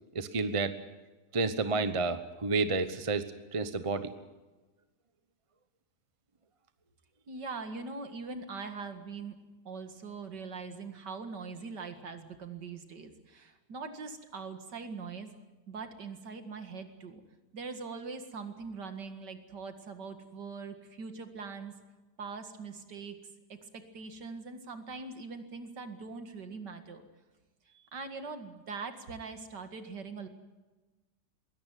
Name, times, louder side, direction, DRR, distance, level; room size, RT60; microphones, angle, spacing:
voice 1, 0.1-0.7 1.3-4.1, right 3 dB, 25° right, 11 dB, 0.9 m, -30 dB
voice 2, 7.3-9.4 9.7-15.3 15.7-17.2 17.5-21.7 22.2-23.2 23.5-27.0 27.7-30.3, right 4 dB, 90° right, 7 dB, 2.6 m, -42 dB
21.5 x 17.5 x 9.2 m, 1.2 s
omnidirectional pair, 1.8 m